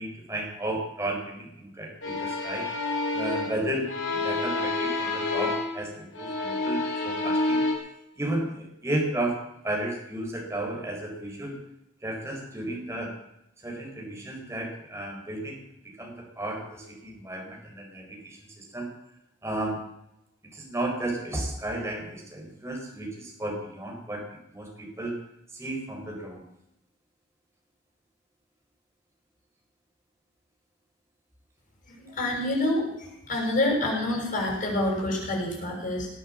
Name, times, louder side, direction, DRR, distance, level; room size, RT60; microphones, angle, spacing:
voice 1, 0.0-2.7 3.1-3.8 4.1-7.6 8.2-11.6 12.0-13.1 13.6-15.6 16.0-18.9 19.4-19.8 20.5-24.2 24.5-25.2 25.5-26.4, right 1 dB, 15° right, 1 dB, 4.4 m, -33 dB
sound 1, 2.0-5.8 6.1-7.7, left 2 dB, 75° left, 4.8 m, -28 dB
voice 2, 31.9-36.1, left 1 dB, 45° left, -2 dB, 6.7 m, -27 dB
20.0 x 8.6 x 7.7 m, 0.84 s
head